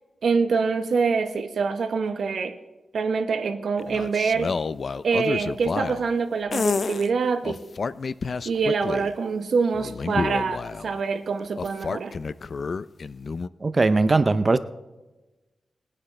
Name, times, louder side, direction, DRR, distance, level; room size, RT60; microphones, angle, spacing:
voice 1, 0.2-2.5 2.9-4.5 5.0-7.6 8.4-12.1, right 5 dB, 75° right, 7 dB, 0.9 m, -25 dB
sound 1, 3.8-6.1 6.5-7.1 7.4-9.1 9.7-11.0 11.6-13.5, left 4 dB, 55° left, 0.3 m, -29 dB
voice 2, 13.6-14.6, right 3 dB, 35° right, 13 dB, 0.5 m, -19 dB
20.0 x 9.8 x 3.2 m, 1.1 s
wide cardioid pair, 85°, 0 cm